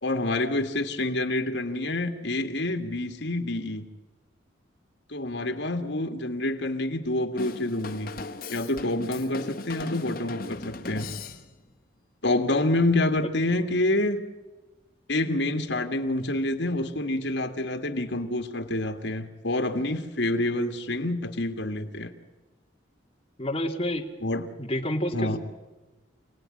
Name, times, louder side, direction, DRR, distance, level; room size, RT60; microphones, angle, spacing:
voice 1, 0.0-3.9 5.1-8.1 8.5-11.1 12.2-14.2 15.1-22.1 24.2-24.4 25.1-25.4, left 2 dB, 75° left, 6 dB, 2.1 m, -27 dB
Drum kit / Drum, 7.4-11.7, left 3 dB, 50° left, 1.8 m, -38 dB
voice 2, 23.4-24.1 24.6-25.4, left 1 dB, 30° left, 2 dB, 2.2 m, -28 dB
28.0 x 18.5 x 9.9 m, 1.2 s
head